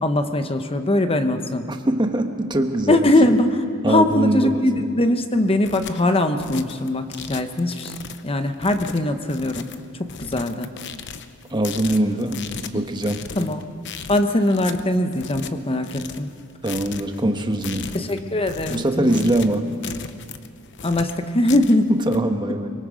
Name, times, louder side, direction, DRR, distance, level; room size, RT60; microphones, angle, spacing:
voice 1, 0.0-1.7 2.9-8.0 8.2-9.7 10.0-10.7 13.4-13.6 14.1-16.3 17.9-19.4 19.8-19.9 20.8-21.9, left 1 dB, 25° left, 8 dB, 1.0 m, -21 dB
voice 2, 1.7-3.1 3.8-4.9 11.5-12.4 12.7-13.2 16.6-17.9 18.7-19.7 21.9-22.7, right 1 dB, 20° right, 5 dB, 1.3 m, -22 dB
sound 1, 5.4-22.2, left 6 dB, 55° left, 0.9 m, -37 dB
25.5 x 22.5 x 5.2 m, 2.3 s
head